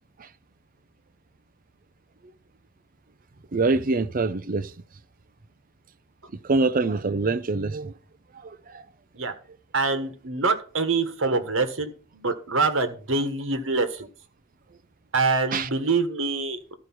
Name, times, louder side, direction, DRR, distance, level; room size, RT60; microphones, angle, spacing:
voice 1, 3.5-4.7 6.4-7.9 8.4-8.8 15.5-15.7, right 3 dB, 45° right, 0.6 m, -25 dB
voice 2, 9.7-14.1 15.1-16.7, right 3 dB, 75° right, 1.5 m, -25 dB
13.5 x 4.6 x 6.0 m
head